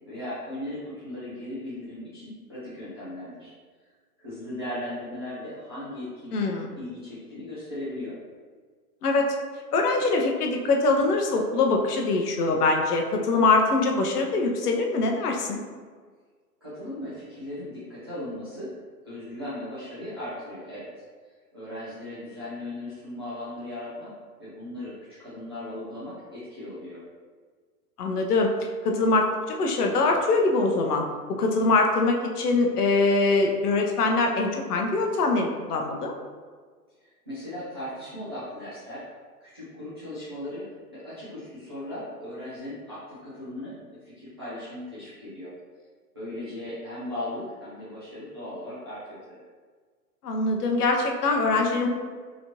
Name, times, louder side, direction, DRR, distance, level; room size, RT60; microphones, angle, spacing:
voice 1, 0.1-3.5 4.2-8.2 16.6-18.7 19.0-20.9 21.5-27.0 37.0-39.0 39.4-40.7 40.9-43.8 44.0-45.5 46.1-49.2, left 1 dB, 20° right, -13 dB, 0.4 m, -37 dB
voice 2, 6.3-6.7 9.0-9.3 9.7-15.6 28.0-28.5 28.8-31.0 31.4-36.1 50.2-51.9, left 3 dB, 70° left, 2 dB, 0.8 m, -23 dB
4.1 x 2.8 x 2.9 m, 1.5 s
hypercardioid pair, 150°, 49 cm